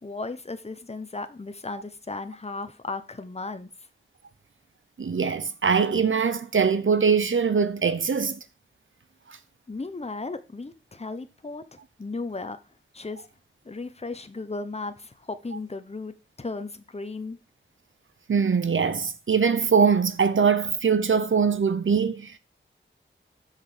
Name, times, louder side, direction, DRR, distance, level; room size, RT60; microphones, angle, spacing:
voice 1, 0.0-3.7 9.7-11.6 12.0-12.6 12.9-13.2 13.6-17.4, left 3 dB, 30° left, 0.9 m, -35 dB
voice 2, 5.0-8.4 18.3-22.3, right 6 dB, 70° right, 0.7 m, -22 dB
6.2 x 5.4 x 6.6 m
wide cardioid pair, 70°, 21 cm